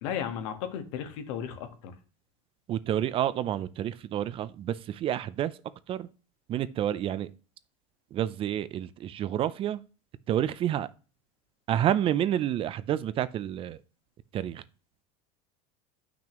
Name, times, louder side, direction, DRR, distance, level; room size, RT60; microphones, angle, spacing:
voice 1, 0.0-1.9, left 8 dB, 80° left, 1.5 m, -35 dB
voice 2, 2.7-5.5 5.9-6.1 6.5-7.3 8.1-9.8 10.3-10.9 11.7-13.8 14.3-14.6, right 11 dB, 35° right, 0.5 m, -29 dB
8.7 x 6.0 x 3.1 m
supercardioid pair, 135°, 16 cm